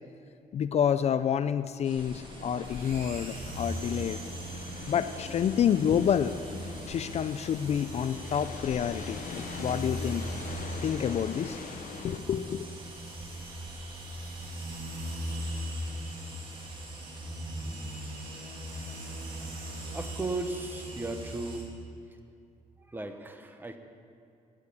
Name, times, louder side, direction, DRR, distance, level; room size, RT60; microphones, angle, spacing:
voice 1, 0.5-4.2 4.9-6.4 6.9-10.2 10.8-11.6 12.0-12.7, left 8 dB, 50° left, 12 dB, 0.4 m, -28 dB
sound 1, 1.8-21.6, right 2 dB, 35° right, 1.6 m, -49 dB
sound 2, 2.0-12.2, left 6 dB, 70° left, 0.8 m, -43 dB
sound 3, 2.6-21.6, right 1 dB, 85° right, 2.8 m, -40 dB
voice 2, 19.9-21.7 22.8-23.8, right 2 dB, 15° right, 7 dB, 1.0 m, -36 dB
11.5 x 10.0 x 7.0 m, 2.5 s
cardioid pair, 120°, 15 cm